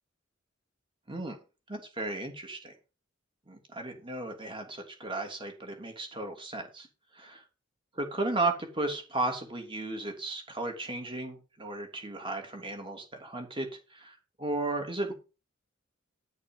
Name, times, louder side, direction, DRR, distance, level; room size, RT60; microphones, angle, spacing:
voice 1, 1.7-2.7 3.5-6.9 7.1-7.3 7.9-13.7 13.9-15.1, right 2 dB, 25° right, 3 dB, 3.1 m, -34 dB
11.0 x 6.5 x 5.5 m, 0.31 s
head